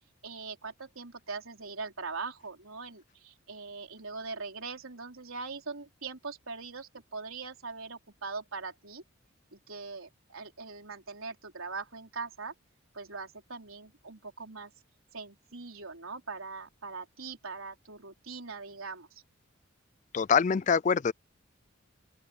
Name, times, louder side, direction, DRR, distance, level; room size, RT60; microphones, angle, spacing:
voice 1, 0.2-9.0 9.5-12.5 12.9-14.7 15.1-19.2, right 4 dB, 85° right, 3.9 m, -41 dB
voice 2, 20.1-21.1, left 6 dB, 35° left, 0.3 m, -24 dB
open air
head